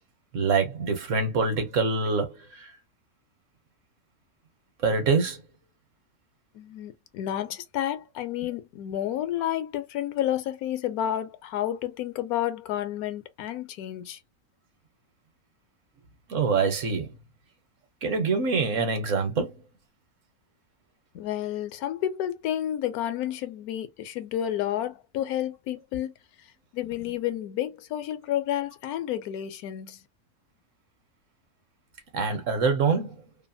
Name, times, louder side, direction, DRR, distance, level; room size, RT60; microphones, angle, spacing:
voice 1, 0.3-2.4 4.8-5.4 16.3-17.1 18.0-19.5 32.1-33.2, right 4 dB, 60° right, 1.1 m, -25 dB
voice 2, 6.5-14.2 21.1-26.1 26.7-30.0, left 11 dB, 85° left, 1.1 m, -30 dB
2.8 x 2.3 x 2.5 m
omnidirectional pair, 1.5 m